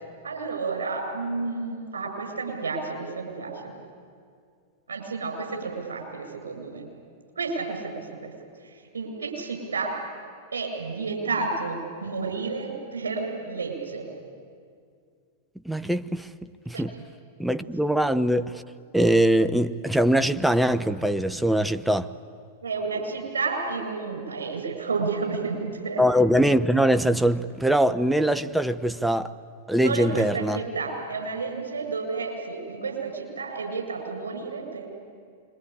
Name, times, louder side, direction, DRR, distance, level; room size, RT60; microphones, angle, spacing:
voice 1, 0.2-3.7 4.9-6.9 7.4-8.3 8.6-10.0 10.5-14.1 16.7-16.8 22.6-26.0 29.8-34.9, right 4 dB, 70° right, 7.6 m, -31 dB
voice 2, 15.7-16.3 16.7-16.9 17.4-18.6 18.9-22.1 26.0-29.3 29.7-30.6, right 1 dB, 5° right, 0.8 m, -22 dB
27.0 x 23.0 x 8.9 m
figure-of-eight pair, 95°, 0 cm